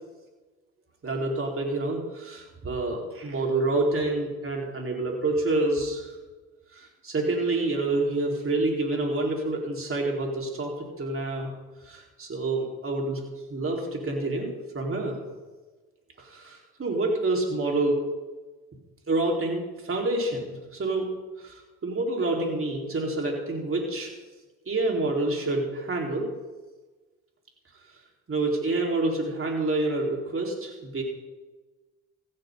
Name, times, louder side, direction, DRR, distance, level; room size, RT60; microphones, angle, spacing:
voice 1, 1.0-6.1 6.7-11.5 11.9-13.2 13.5-14.5 14.7-15.2 16.3-18.0 19.1-21.0 21.4-21.5 21.8-24.1 24.7-26.3 28.3-31.0, right 2 dB, 40° right, -1 dB, 4.7 m, -27 dB
15.5 x 14.5 x 4.1 m, 1.2 s
supercardioid pair, 60°, 35 cm